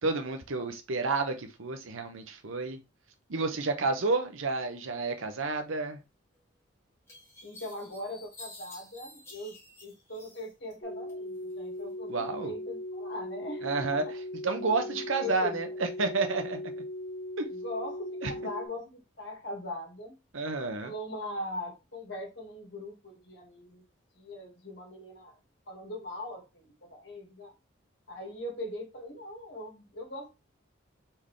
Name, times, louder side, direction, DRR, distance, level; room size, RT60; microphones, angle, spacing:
voice 1, 0.0-2.8 3.3-6.0 12.1-12.5 13.6-14.0 14.4-16.6 17.4-17.5 18.2-18.3 20.3-20.9, right 3 dB, 75° right, 0.8 m, -30 dB
sound 1, 6.3-6.4 7.1-10.7 11.1-11.8, left 2 dB, 10° left, 1.3 m, -51 dB
voice 2, 7.4-9.5 9.8-14.0 14.8-15.6 17.5-20.2 20.8-23.8 24.1-25.4 25.7-27.5 28.1-30.3, left 1 dB, 55° left, 1.7 m, -40 dB
sound 2, 10.8-18.7, left 1 dB, 40° left, 0.7 m, -39 dB
4.5 x 3.7 x 3.1 m
head